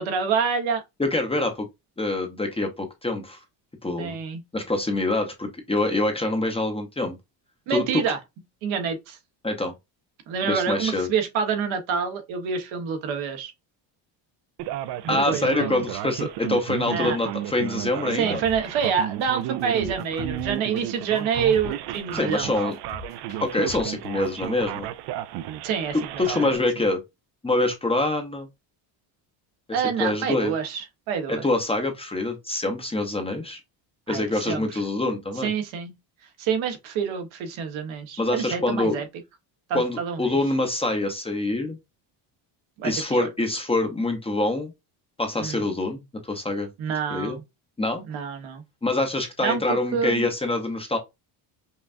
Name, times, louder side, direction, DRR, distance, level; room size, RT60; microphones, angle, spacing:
voice 1, 0.0-0.8 4.0-4.4 7.7-8.2 8.6-9.2 10.3-13.5 15.0-15.8 16.9-17.2 18.1-22.5 25.6-26.0 26.3-26.5 29.7-31.4 34.1-34.6 35.4-35.9 36.4-39.0 39.7-40.4 42.8-43.3 45.4-45.6 46.8-47.4 48.1-48.6 49.4-50.3, right 6 dB, 75° right, 1.3 m, -27 dB
voice 2, 1.0-1.7 2.0-3.4 3.8-4.1 4.5-7.2 7.7-8.0 9.4-9.7 10.4-11.1 15.1-18.4 22.1-22.7 23.4-24.9 26.2-27.0 27.4-28.5 30.0-30.5 31.3-33.6 34.1-35.5 38.2-38.9 39.7-41.8 42.8-44.7 45.2-46.7 47.1-47.4 47.8-48.0 48.8-51.0, left 2 dB, 10° left, 0.7 m, -25 dB
Male speech man speaking, 14.6-26.6, right 12 dB, 60° right, 0.5 m, -33 dB
sound 1, 18.4-18.9 19.2-19.3 19.6-22.4 22.7-24.0 24.2-24.3, left 5 dB, 65° left, 1.7 m, -41 dB
5.4 x 2.3 x 2.5 m
cardioid pair, 140°, 47 cm